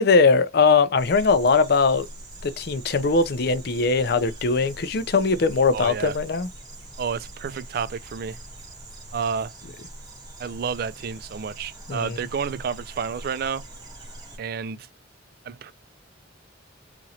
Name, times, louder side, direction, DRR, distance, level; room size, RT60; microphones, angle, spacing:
voice 1, 0.0-2.1 2.4-6.5 11.9-12.2, left 4 dB, 55° left, 0.5 m, -20 dB
sound 1, 1.0-14.4, right 1 dB, 20° right, 1.0 m, -43 dB
voice 2, 5.7-6.2 7.0-8.4 9.1-9.5 10.4-13.7 14.4-14.9 15.4-15.7, right 6 dB, 50° right, 0.3 m, -30 dB
3.0 x 2.5 x 2.8 m
head